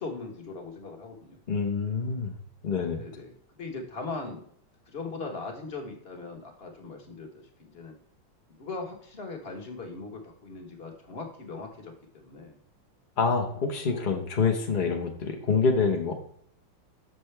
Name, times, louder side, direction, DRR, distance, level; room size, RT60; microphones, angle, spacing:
voice 1, 0.0-1.4 3.0-4.4 4.9-8.0 8.5-12.6 13.8-14.1, left 3 dB, 35° left, 2 dB, 1.2 m, -40 dB
voice 2, 1.5-2.3 2.6-3.0 13.2-16.2, left 4 dB, 60° left, 3 dB, 0.5 m, -26 dB
6.7 x 6.0 x 3.2 m, 0.65 s
omnidirectional pair, 2.1 m